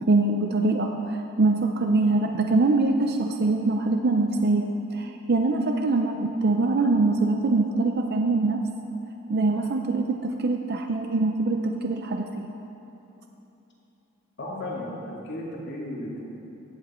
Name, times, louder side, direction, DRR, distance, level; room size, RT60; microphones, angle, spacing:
voice 1, 0.0-8.6 9.3-12.3, right 3 dB, 50° right, 4 dB, 0.5 m, -23 dB
voice 2, 14.4-16.2, left 1 dB, 60° left, -4 dB, 2.5 m, -34 dB
16.5 x 8.2 x 4.4 m, 3.0 s
head